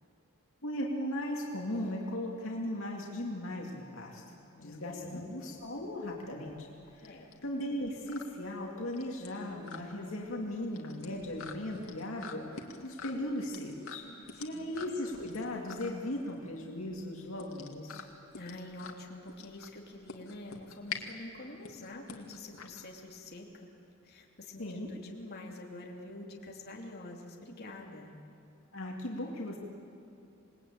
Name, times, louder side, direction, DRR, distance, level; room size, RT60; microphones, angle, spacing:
voice 1, 0.6-4.2 4.6-7.1 7.4-14.0 14.4-18.0 24.6-24.9 28.7-29.6, left 1 dB, 70° left, -2 dB, 2.7 m, -37 dB
voice 2, 4.6-5.2 7.0-7.3 14.0-14.7 18.4-23.7 24.0-28.1, left 2 dB, 50° left, -1 dB, 3.2 m, -47 dB
sound 1, 5.6-23.4, left 5 dB, 85° left, 2.2 m, -47 dB
27.5 x 20.5 x 8.9 m, 2.7 s
head